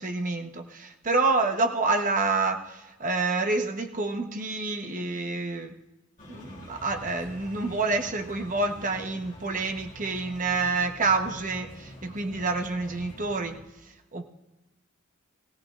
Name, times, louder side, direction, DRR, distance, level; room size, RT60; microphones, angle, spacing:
voice 1, 0.0-5.7 6.2-13.6 14.1-14.2, right 3 dB, 40° right, 5 dB, 1.0 m, -28 dB
sound 1, 6.2-13.6, equal, 40° left, 2.2 m, -46 dB
18.5 x 16.5 x 2.5 m, 0.99 s
head